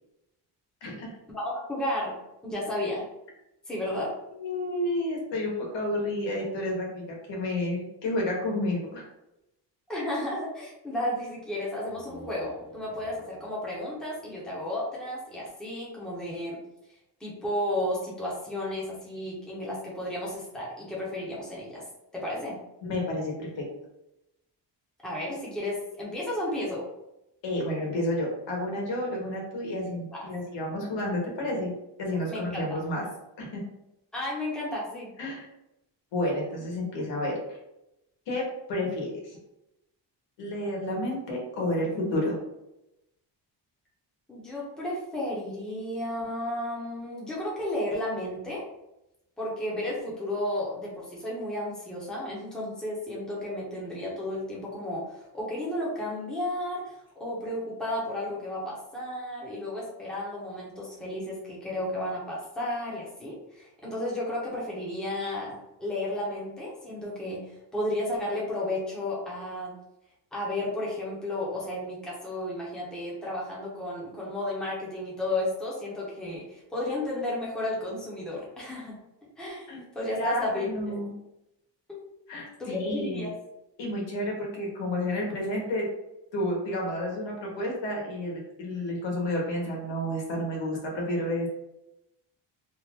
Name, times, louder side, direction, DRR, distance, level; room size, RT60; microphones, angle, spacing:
voice 1, 1.3-2.2 2.4-3.0 3.7-4.1 9.9-16.6 17.2-21.8 22.1-22.6 25.0-26.8 30.1-30.2 32.3-32.8 34.1-35.1 44.3-48.6 49.4-69.7 70.3-79.0 79.4-79.7 79.9-81.0 81.9-82.0 82.6-83.3, left 1 dB, ahead, -6 dB, 0.8 m, -33 dB
voice 2, 4.4-9.0 22.8-23.6 27.4-33.0 33.4-33.6 35.2-35.5 36.1-37.3 38.3-38.4 38.7-39.4 40.4-42.4 79.7-79.8 80.1-81.1 82.3-83.3 83.8-85.9 86.3-91.5, left 1 dB, 80° left, -1 dB, 1.2 m, -30 dB
sound 1, 11.7-15.4, right 2 dB, 45° right, 1.0 m, -50 dB
2.9 x 2.4 x 3.4 m, 0.89 s
cardioid pair, 165°, 43 cm